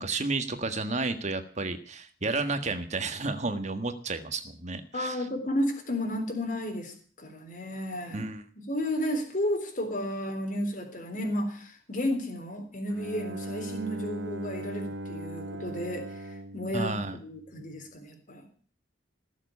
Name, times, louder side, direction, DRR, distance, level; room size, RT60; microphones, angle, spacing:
voice 1, 0.0-5.3 8.1-8.4 16.7-17.2, right 3 dB, 40° right, 8 dB, 1.7 m, -32 dB
voice 2, 4.9-8.3 8.7-18.5, left 1 dB, 45° left, 3 dB, 3.8 m, -32 dB
Bowed string instrument, 12.9-17.7, right 1 dB, 90° right, 1.4 m, -39 dB
18.5 x 7.5 x 9.7 m, 0.43 s
head